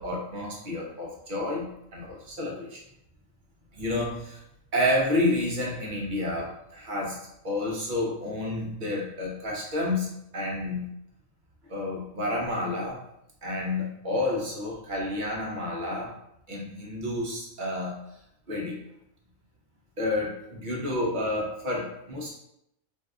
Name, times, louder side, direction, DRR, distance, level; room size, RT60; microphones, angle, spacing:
voice 1, 0.0-2.8 3.7-4.4 4.7-7.2 7.4-10.1 10.3-10.9 11.7-13.0 13.4-16.2 16.5-18.0 18.5-18.8 20.0-22.3, left 1 dB, 50° right, -2 dB, 0.7 m, -30 dB
2.7 x 2.3 x 3.5 m, 0.79 s
omnidirectional pair, 1.3 m